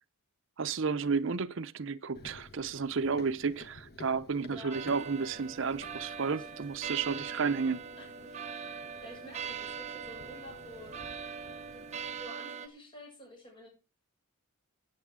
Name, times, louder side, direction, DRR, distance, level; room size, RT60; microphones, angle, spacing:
voice 1, 0.6-7.8, right 5 dB, 60° right, 0.6 m, -32 dB
Run, 2.1-12.2, left 2 dB, 50° left, 1.2 m, -54 dB
voice 2, 4.4-4.8 6.3-6.4 8.0-8.7 9.0-10.9 11.7-13.7, equal, 25° left, 6.7 m, -50 dB
sound 1, 4.7-12.7, right 6 dB, 30° right, 0.8 m, -41 dB
15.5 x 8.6 x 3.7 m
head